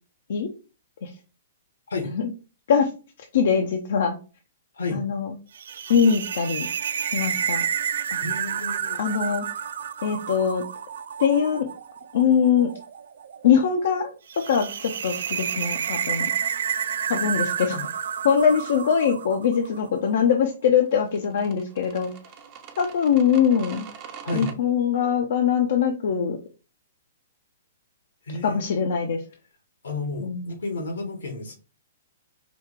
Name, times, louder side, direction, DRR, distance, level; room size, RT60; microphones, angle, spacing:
voice 1, 3.3-4.2 4.9-5.3 5.9-6.7 7.1-7.6 9.0-9.5 10.0-10.6 11.2-11.7 12.1-12.7 13.4-14.1 14.5-16.3 17.1-17.9 18.2-22.1 22.8-23.9 24.3-26.4 28.4-29.2 30.2-30.4, left 7 dB, 65° left, 0.6 m, -22 dB
sound 1, 5.5-19.9, right 8 dB, 70° right, 0.3 m, -30 dB
voice 2, 8.2-9.0 24.2-24.5 28.3-28.6 29.8-31.6, left 3 dB, 85° left, 1.5 m, -31 dB
sound 2, 20.9-24.5, right 7 dB, 35° right, 0.8 m, -42 dB
4.8 x 2.4 x 3.6 m
hypercardioid pair, 130°, 0 cm